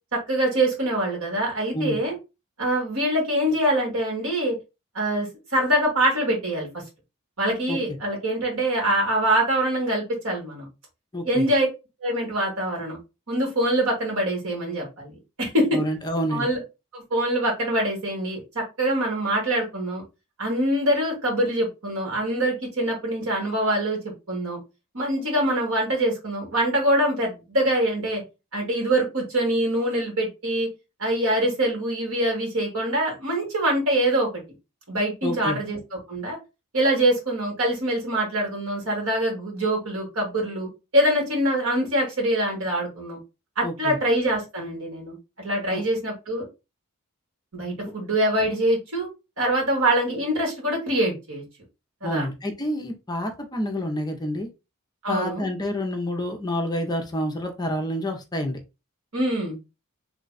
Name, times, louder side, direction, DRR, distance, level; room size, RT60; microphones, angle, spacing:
voice 1, 0.1-2.2 2.6-4.6 4.9-6.7 7.4-10.7 11.2-11.7 12.0-13.0 13.3-15.7 16.3-16.6 16.9-20.0 20.4-24.0 24.3-24.6 24.9-28.2 28.5-30.7 31.0-34.3 34.9-35.8 36.1-36.4 36.7-43.2 43.6-46.5 47.5-49.1 49.4-51.4 52.0-52.3 55.0-55.5 59.1-59.6, right 1 dB, 70° right, 0 dB, 1.9 m, -24 dB
voice 2, 11.1-11.5 15.7-16.5 35.2-35.6 43.6-44.0 45.7-45.8 52.0-54.5 55.1-58.6, left 1 dB, 20° left, 4 dB, 0.5 m, -28 dB
3.2 x 2.2 x 3.8 m, 0.26 s
head